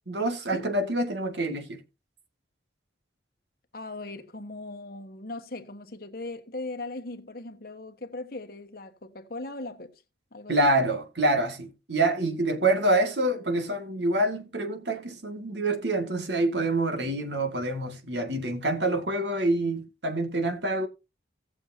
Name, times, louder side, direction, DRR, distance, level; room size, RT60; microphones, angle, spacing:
voice 1, 0.1-1.8 10.5-20.9, right 2 dB, 70° right, 2.0 m, -26 dB
voice 2, 3.7-10.0 10.3-10.7, left 2 dB, 55° left, 1.3 m, -39 dB
17.5 x 7.0 x 2.7 m
head